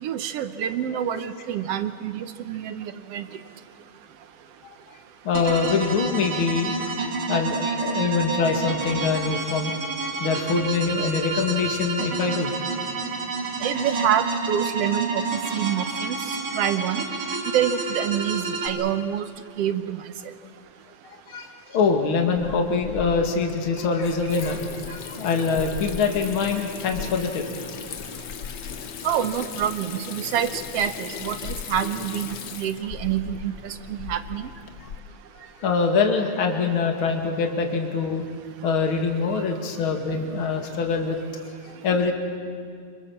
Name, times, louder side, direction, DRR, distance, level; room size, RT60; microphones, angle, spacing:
voice 1, 0.0-3.2 8.1-8.2 13.6-15.2 15.5-17.0 17.5-19.3 19.6-20.0 29.0-34.5, right 9 dB, 70° right, 11 dB, 1.6 m, -27 dB
voice 2, 5.2-6.9 7.3-9.8 10.2-12.5 21.3-27.4 34.8-34.9 35.3-38.2 38.6-41.2 41.6-42.1, left 5 dB, 45° left, 3 dB, 2.8 m, -24 dB
sound 1, 5.3-18.7, right 4 dB, 45° right, 3.0 m, -29 dB
Water tap faucet / Sink (filling or washing), 22.4-35.0, left 7 dB, 85° left, 0.9 m, -37 dB
26.5 x 25.5 x 7.3 m, 2.2 s
omnidirectional pair, 3.4 m